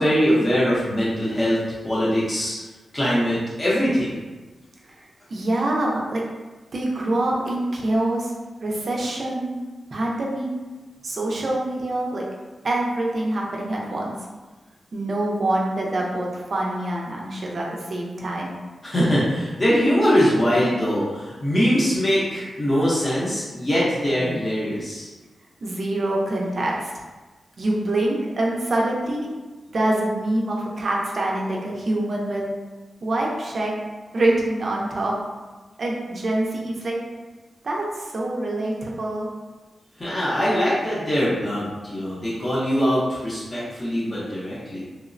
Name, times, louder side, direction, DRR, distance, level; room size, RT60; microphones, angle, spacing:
voice 1, 0.0-1.6 1.8-2.5 2.9-4.1 18.8-25.1 40.0-44.8, equal, 25° left, -8 dB, 0.6 m, -22 dB
voice 2, 5.3-6.2 6.7-8.3 8.6-9.5 9.9-10.5 11.0-12.2 12.6-14.2 14.9-18.5 25.6-26.9 27.6-29.3 29.7-32.5 33.0-33.7 34.1-35.1 35.8-37.0 37.6-39.3, right 1 dB, 50° right, -2 dB, 0.4 m, -25 dB
2.9 x 2.0 x 2.5 m, 1.2 s
wide cardioid pair, 145°, 0 cm